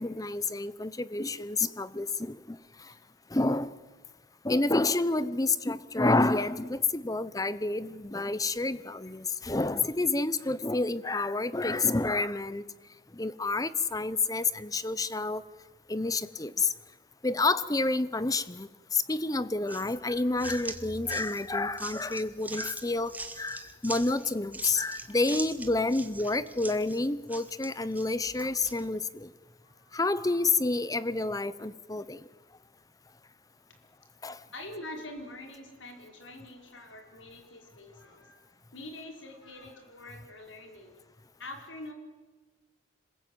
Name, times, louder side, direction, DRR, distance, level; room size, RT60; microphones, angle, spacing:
voice 1, 0.0-2.6 3.3-3.7 4.4-12.6 13.1-15.4 15.9-16.7 17.2-29.3 29.9-32.2 34.2-34.4, left 3 dB, 20° left, 0.8 m, -29 dB
sound 1, 19.7-28.8, right 3 dB, 10° right, 1.5 m, -42 dB
voice 2, 29.6-30.5 34.4-41.0 41.4-41.9, left 1 dB, 80° left, 5.0 m, -45 dB
26.5 x 21.0 x 9.2 m
head